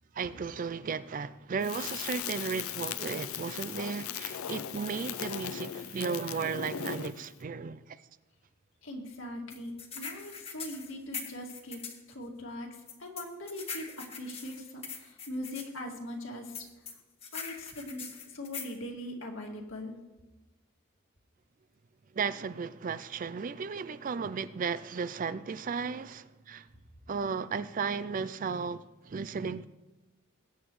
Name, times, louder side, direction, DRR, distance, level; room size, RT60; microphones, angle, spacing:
voice 1, 0.1-8.1 22.1-26.7 27.1-29.7, right 5 dB, 40° right, 0.4 m, -35 dB
Crackle, 1.6-7.3, left 10 dB, 80° left, 0.5 m, -38 dB
voice 2, 8.8-11.8 12.1-17.0 17.3-20.0, left 1 dB, 60° left, 2.3 m, -41 dB
sound 1, 9.5-12.0 12.9-15.7 16.5-18.8, left 6 dB, 30° left, 1.5 m, -41 dB
20.5 x 9.0 x 3.2 m
head